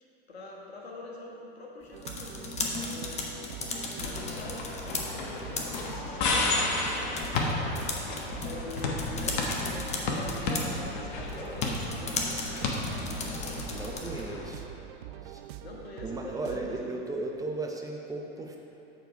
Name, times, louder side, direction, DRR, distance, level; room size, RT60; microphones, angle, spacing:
voice 1, 0.3-3.5 4.0-7.5 8.2-12.6 15.6-16.8, left 3 dB, 75° left, -1 dB, 1.4 m, -45 dB
sound 1, 1.8-14.3, left 3 dB, 20° left, 0.9 m, -37 dB
sound 2, 1.9-17.0, right 12 dB, 55° right, 0.4 m, -45 dB
sound 3, 4.0-14.5, left 3 dB, 50° left, 1.2 m, -32 dB
voice 2, 13.7-14.7 15.2-15.4 16.0-18.6, right 2 dB, 10° right, 0 dB, 0.7 m, -36 dB
7.8 x 4.5 x 5.8 m, 2.8 s
figure-of-eight pair, 85°, 31 cm